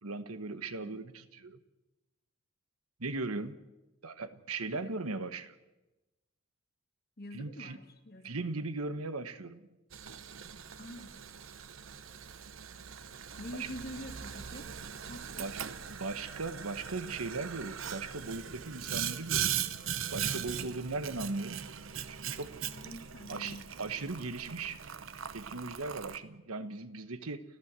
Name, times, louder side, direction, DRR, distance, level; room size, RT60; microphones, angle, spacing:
voice 1, 0.0-1.6 3.0-3.6 4.0-5.5 7.3-7.8 8.2-9.7 13.5-13.7 15.4-15.6 15.9-19.6 20.1-21.6 22.1-22.6 23.3-24.8 25.3-27.4, right 3 dB, 90° right, 11 dB, 1.3 m, -38 dB
voice 2, 7.2-8.4 10.8-11.2 13.4-14.7 15.1-15.5 22.6-23.7, equal, 45° left, 7 dB, 2.1 m, -46 dB
Boiling, 9.9-26.2, right 8 dB, 65° right, 0.9 m, -40 dB
29.5 x 14.0 x 7.6 m, 1.0 s
head